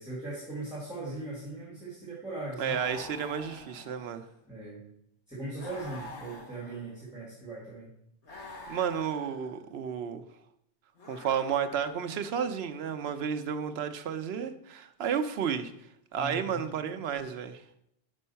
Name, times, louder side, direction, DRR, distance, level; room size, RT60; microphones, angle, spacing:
voice 1, 0.0-2.8 4.5-4.8 5.3-7.9 16.2-16.6, right 2 dB, 5° right, -7 dB, 2.2 m, -39 dB
sound 1, 2.6-4.4 5.6-7.1 8.2-9.6 10.9-12.1, left 2 dB, 70° left, 1.7 m, -47 dB
voice 2, 2.6-4.2 8.7-10.2 11.1-15.7 16.1-17.6, right 7 dB, 65° right, 9 dB, 0.8 m, -32 dB
5.4 x 5.3 x 5.6 m, 0.75 s
omnidirectional pair, 1.2 m